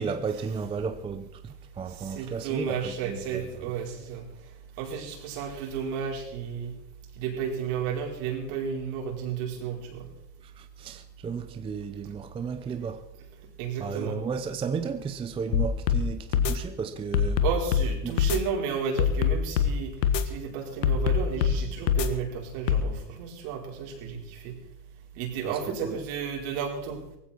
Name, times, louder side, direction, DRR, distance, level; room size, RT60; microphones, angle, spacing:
voice 1, 0.0-3.7 10.4-13.1 13.8-17.4 18.0-18.2 25.5-26.0, right 5 dB, 10° right, 0.5 m, -34 dB
voice 2, 1.8-4.5 4.8-6.7 7.2-10.1 13.6-14.2 17.4-24.6 25.1-27.0, right 6 dB, 60° right, 4.9 m, -33 dB
sound 1, 15.5-16.0 16.3-16.5 17.1-17.9 18.2-18.4 19.0-19.7 20.0-20.2 20.8-21.6 21.9-22.1 22.7-22.8, left 8 dB, 85° left, 1.7 m, -23 dB
18.5 x 15.5 x 4.4 m
supercardioid pair, 125°, 49 cm